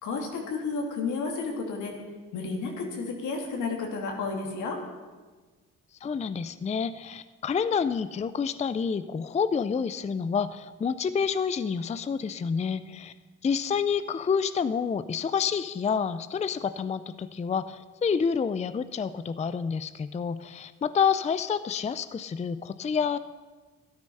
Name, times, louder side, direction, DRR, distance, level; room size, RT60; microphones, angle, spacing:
voice 1, 0.0-1.9 2.3-4.8, left 4 dB, 80° left, 1 dB, 2.7 m, -32 dB
voice 2, 6.0-13.1 13.4-23.2, left 6 dB, 25° left, 13 dB, 0.4 m, -28 dB
12.5 x 12.0 x 5.5 m, 1.4 s
cardioid pair, 90°, 30 cm